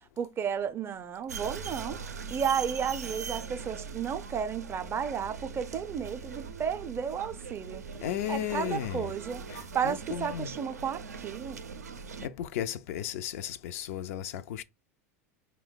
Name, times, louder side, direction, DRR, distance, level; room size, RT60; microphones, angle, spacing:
voice 1, 0.2-2.0 2.3-7.8 8.3-9.4 9.7-11.6, right 7 dB, 30° right, 0.4 m, -33 dB
sound 1, 1.3-12.3, right 5 dB, 90° right, 0.4 m, -41 dB
voice 2, 8.0-9.1 9.5-10.5 12.2-14.6, left 10 dB, 65° left, 0.4 m, -35 dB
4.3 x 2.2 x 3.8 m
hypercardioid pair, 90°, 8 cm